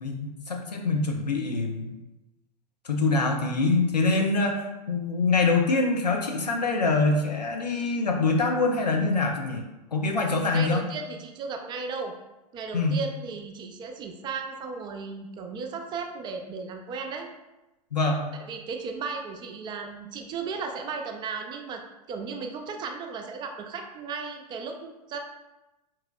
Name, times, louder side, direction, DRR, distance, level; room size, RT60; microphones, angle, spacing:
voice 1, 0.0-1.9 2.8-9.6 9.9-10.8 12.7-13.0 17.9-18.3, left 3 dB, 80° left, 2 dB, 0.6 m, -24 dB
voice 2, 10.3-12.1 12.5-17.3 18.5-21.8 22.1-25.2, right 4 dB, 20° right, 4 dB, 0.4 m, -35 dB
4.6 x 3.0 x 2.3 m, 1.0 s
figure-of-eight pair, 90°, 21 cm